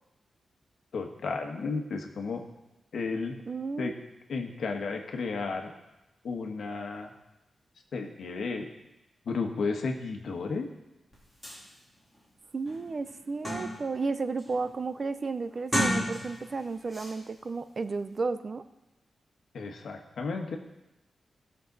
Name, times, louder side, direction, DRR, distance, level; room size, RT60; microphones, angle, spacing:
voice 1, 0.9-2.4 2.9-3.4 3.8-3.9 4.3-5.7 6.2-7.1 7.9-8.7 9.3-10.7 19.5-20.6, left 4 dB, 75° left, 3 dB, 1.3 m, -33 dB
voice 2, 3.5-4.0 12.5-18.6, right 4 dB, 35° right, 12 dB, 0.4 m, -33 dB
sound 1, 11.1-11.2 11.4-11.6 12.1-12.2 12.7-14.0 14.4-14.7 15.6-16.6 16.9-17.1, equal, 5° right, 3.2 m, -32 dB
16.5 x 6.7 x 3.9 m, 0.96 s
wide cardioid pair, 170°, 0 cm